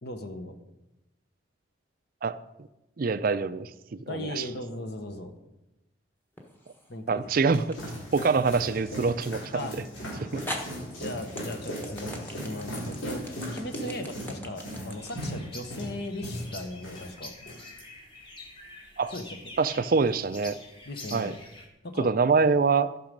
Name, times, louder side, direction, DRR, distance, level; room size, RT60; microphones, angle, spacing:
voice 1, 0.0-0.6 4.1-5.3 6.9-7.2 9.5-9.7 11.0-17.3 19.1-19.4 20.9-21.3 21.8-22.1, left 1 dB, 55° left, 7 dB, 1.1 m, -38 dB
voice 2, 3.0-3.7 4.1-4.5 7.1-7.8 8.1-9.8 10.3-10.5 19.0-19.1 19.6-20.6 21.1-21.3 22.0-22.9, right 4 dB, 45° right, 13 dB, 0.4 m, -25 dB
sound 1, 6.4-7.0 7.7-7.8 9.7-9.8 10.5-16.7, equal, 10° left, 1.1 m, -41 dB
sound 2, 7.2-17.1 17.4-17.8, equal, 85° left, 4.0 m, -37 dB
sound 3, 14.9-21.7, left 2 dB, 25° left, 1.5 m, -46 dB
13.5 x 6.2 x 5.2 m, 0.96 s
head